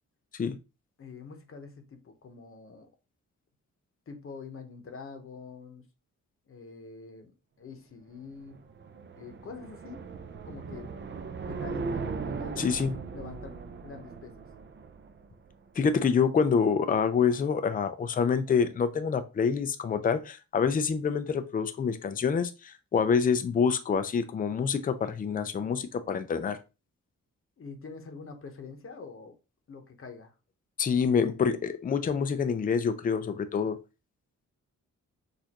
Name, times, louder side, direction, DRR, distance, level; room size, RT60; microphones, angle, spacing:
voice 1, 1.0-2.9 4.1-5.9 6.5-8.6 9.2-10.1 10.4-10.9 11.4-12.8 13.1-14.5 27.6-29.4 29.7-30.4, left 4 dB, 45° left, 0.9 m, -45 dB
sound 1, 8.2-15.5, right 4 dB, 40° right, 0.5 m, -38 dB
voice 2, 12.6-12.9 15.8-26.6 30.8-33.8, left 6 dB, 30° left, 0.4 m, -27 dB
6.4 x 2.6 x 2.9 m
wide cardioid pair, 155°, 31 cm